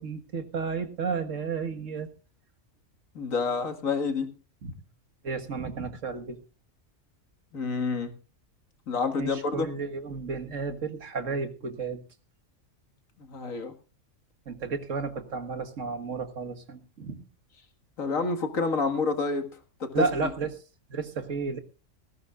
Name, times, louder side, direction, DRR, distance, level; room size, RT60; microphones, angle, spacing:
voice 1, 0.0-2.1 4.6-4.7 5.2-6.4 9.2-12.0 14.5-17.2 19.9-20.5 20.9-21.6, right 5 dB, 70° right, 7 dB, 1.9 m, -32 dB
voice 2, 3.1-4.3 7.5-8.1 8.9-9.7 13.3-13.7 18.0-19.5 19.8-20.3, left 4 dB, 90° left, 8 dB, 2.2 m, -28 dB
18.5 x 16.0 x 2.4 m, 0.32 s
omnidirectional pair, 1.4 m